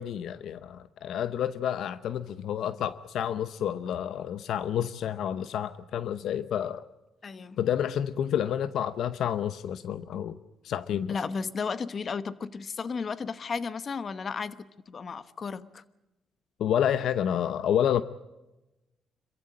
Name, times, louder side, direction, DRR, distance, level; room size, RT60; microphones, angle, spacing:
voice 1, 0.0-6.8 7.6-10.4 10.6-11.2 16.6-18.0, left 9 dB, 75° left, 0.7 m, -29 dB
voice 2, 7.2-7.6 11.1-15.8, left 5 dB, 45° left, 1.1 m, -34 dB
26.5 x 15.0 x 8.7 m
cardioid pair, 90°, 0 cm